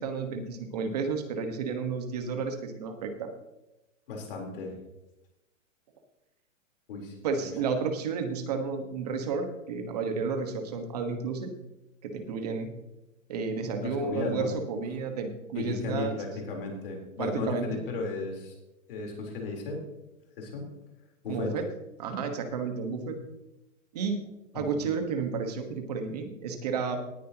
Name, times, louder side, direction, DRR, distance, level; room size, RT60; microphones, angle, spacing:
voice 1, 0.0-3.3 7.2-11.5 12.0-12.7 13.3-16.1 17.2-17.8 21.3-21.6 22.0-23.2 23.9-27.0, right 5 dB, 30° right, 6 dB, 1.4 m, -32 dB
voice 2, 4.1-4.7 6.9-7.1 13.8-14.5 15.5-18.5 18.9-19.8 20.4-20.7 21.2-21.5 24.5-24.9, left 3 dB, 45° left, 0 dB, 3.9 m, -35 dB
18.5 x 10.0 x 2.9 m, 0.94 s
hypercardioid pair, 180°, 39 cm